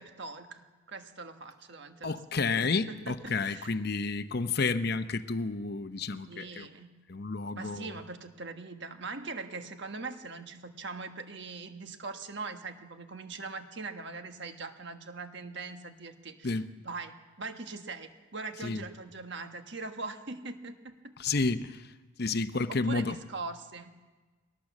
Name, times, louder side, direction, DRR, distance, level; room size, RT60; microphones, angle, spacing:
voice 1, 0.0-3.7 6.3-7.0 7.5-21.1 22.3-22.4 22.8-23.9, right 3 dB, 55° right, 1.5 m, -42 dB
voice 2, 2.0-6.7 7.1-7.9 16.4-16.7 18.6-18.8 21.2-21.8 22.2-23.2, left 4 dB, 50° left, 0.7 m, -30 dB
22.0 x 18.5 x 7.3 m
head